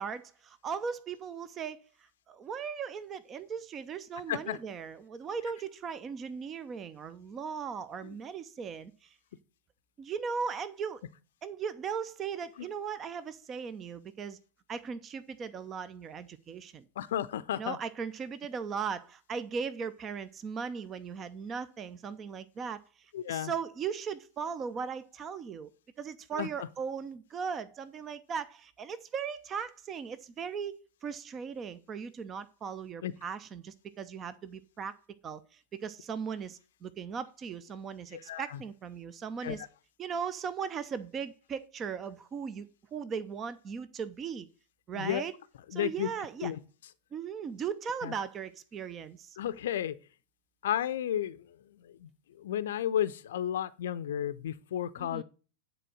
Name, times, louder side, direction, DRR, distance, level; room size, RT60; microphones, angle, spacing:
voice 1, 0.0-1.8 2.3-9.1 10.0-11.0 11.4-14.4 14.7-16.8 17.6-25.7 26.0-34.9 35.2-39.6 40.0-44.5 44.9-45.3 45.7-46.5 47.1-49.4 55.0-55.2, right 6 dB, 25° right, 0.6 m, -38 dB
voice 2, 4.3-4.6 8.0-8.1 12.6-12.7 17.0-17.8 23.1-23.5 26.3-26.7 33.0-33.1 38.1-38.6 39.4-39.7 44.9-45.3 45.7-46.1 46.4-46.6 48.0-48.1 49.4-50.0 50.6-55.2, left 11 dB, 60° left, 0.6 m, -33 dB
10.0 x 4.3 x 6.3 m
figure-of-eight pair, 90°, 0 cm